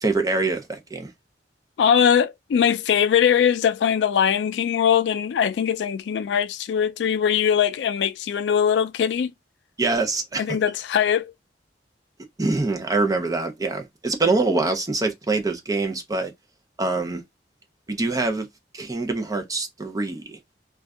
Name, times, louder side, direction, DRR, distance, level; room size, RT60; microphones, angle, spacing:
voice 1, 0.0-1.1 9.8-10.6 12.4-16.3 16.8-17.2 17.9-18.5 18.7-20.4, right 3 dB, 20° right, 0.6 m, -24 dB
voice 2, 1.8-9.3 10.4-11.3, left 8 dB, 75° left, 0.3 m, -21 dB
2.6 x 2.3 x 3.4 m
head